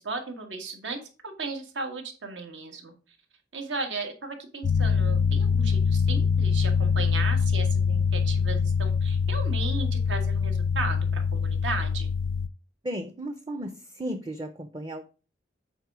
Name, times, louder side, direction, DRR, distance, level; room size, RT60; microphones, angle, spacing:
voice 1, 0.0-2.9 3.5-12.1, right 3 dB, 85° right, 4 dB, 1.6 m, -35 dB
sound 1, 4.6-12.5, left 5 dB, 85° left, 0.4 m, -24 dB
voice 2, 12.8-15.0, right 1 dB, 25° right, 8 dB, 0.5 m, -34 dB
7.9 x 4.5 x 4.8 m, 0.35 s
head